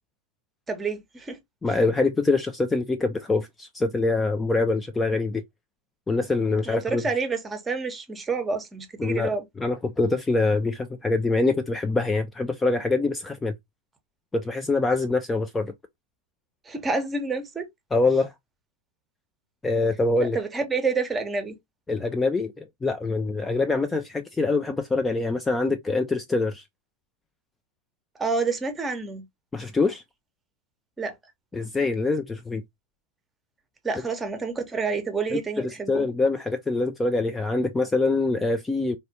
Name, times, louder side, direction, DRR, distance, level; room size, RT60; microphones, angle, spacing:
voice 1, 0.7-1.4 6.6-9.4 16.7-17.7 20.2-21.6 28.2-29.2 31.0-31.1 33.8-36.0, right 4 dB, 15° right, 0.8 m, -28 dB
voice 2, 1.6-5.4 6.1-7.0 9.0-13.5 14.3-15.7 17.9-18.3 19.6-20.4 21.9-26.6 29.5-30.0 31.5-32.6 35.3-39.0, left 3 dB, 10° left, 0.3 m, -24 dB
4.0 x 2.2 x 2.7 m
figure-of-eight pair, 90°, 0 cm